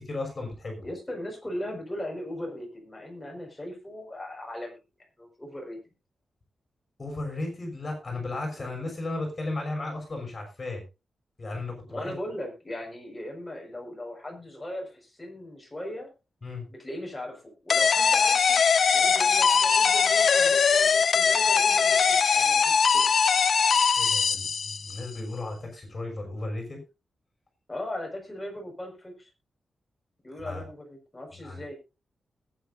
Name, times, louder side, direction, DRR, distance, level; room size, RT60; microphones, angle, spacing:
voice 1, 0.0-0.8 7.0-10.8 11.4-12.1 16.4-16.7 24.0-26.8 30.4-30.6 31.3-31.6, left 2 dB, 30° left, 2 dB, 6.1 m, -35 dB
voice 2, 0.8-4.8 5.2-5.8 8.5-8.6 11.9-16.1 16.7-18.6 18.9-23.1 27.7-29.3 30.2-31.7, left 1 dB, 10° left, 0 dB, 5.4 m, -38 dB
sound 1, 17.7-25.0, left 6 dB, 55° left, 0.5 m, -21 dB
20.5 x 9.7 x 2.6 m, 0.27 s
wide cardioid pair, 150°, 0 cm